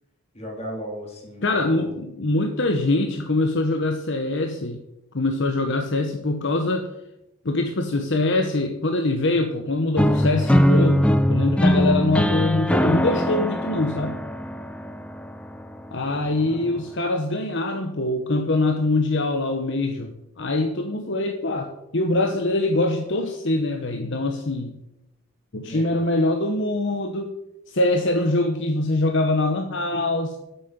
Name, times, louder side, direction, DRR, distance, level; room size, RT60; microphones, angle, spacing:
voice 1, 0.3-1.9 16.4-16.7 25.6-26.0, equal, 30° left, -1 dB, 3.4 m, -36 dB
voice 2, 1.4-4.8 5.1-6.9 7.4-14.2 15.9-24.7 25.5-27.3 27.7-30.4, left 2 dB, 55° left, 5 dB, 0.9 m, -23 dB
sound 1, 10.0-15.9, equal, 5° left, 0.5 m, -21 dB
9.4 x 8.3 x 6.8 m, 0.89 s
head